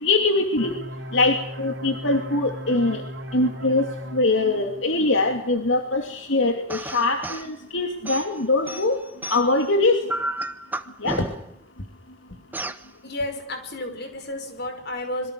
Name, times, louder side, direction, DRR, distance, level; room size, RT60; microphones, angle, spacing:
voice 1, 0.0-0.7 1.1-3.0 3.3-9.0 9.3-10.0 11.0-11.3, left 2 dB, 75° left, 4 dB, 2.8 m, -22 dB
sound 1, 0.6-6.0, equal, 60° right, 5.1 m, -37 dB
sound 2, 6.7-7.5 8.0-9.7 10.1-11.6 12.5-12.8, right 1 dB, 10° right, 1.1 m, -32 dB
voice 2, 13.0-15.3, left 1 dB, 55° left, 6 dB, 5.6 m, -31 dB
26.5 x 23.5 x 6.5 m, 0.72 s
head